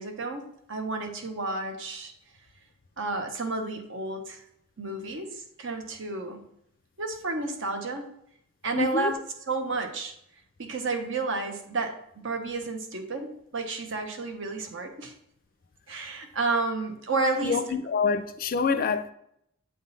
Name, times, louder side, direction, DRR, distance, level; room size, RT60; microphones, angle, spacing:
voice 1, 0.0-2.1 3.0-4.4 4.8-6.4 7.0-8.1 8.6-9.1 9.5-10.1 10.6-15.1 15.9-17.6, right 3 dB, 65° right, 1.0 m, -31 dB
voice 2, 8.7-9.1 17.4-19.1, left 5 dB, 45° left, 0.4 m, -26 dB
7.9 x 3.7 x 4.0 m
head